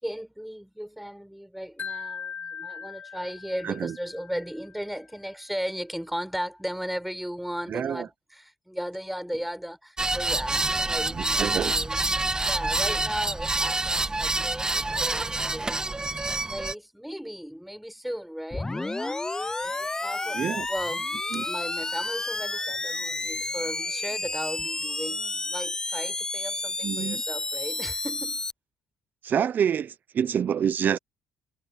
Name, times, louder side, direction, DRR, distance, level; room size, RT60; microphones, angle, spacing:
voice 1, 0.0-12.1 12.4-16.1 16.5-19.2 19.6-21.1 21.4-28.4, equal, ahead, 5.9 m, -36 dB
Wind chime, 1.8-4.9, left 7 dB, 50° left, 6.3 m, -40 dB
voice 2, 3.6-3.9 7.7-8.1 11.1-11.7 20.3-20.7 21.3-21.5 26.8-27.2 29.2-31.0, right 8 dB, 55° right, 0.5 m, -27 dB
sound 1, 10.0-16.7, right 2 dB, 20° right, 2.2 m, -27 dB
sound 2, 18.5-28.5, left 2 dB, 15° left, 0.5 m, -31 dB
supercardioid pair, 70°, 4 cm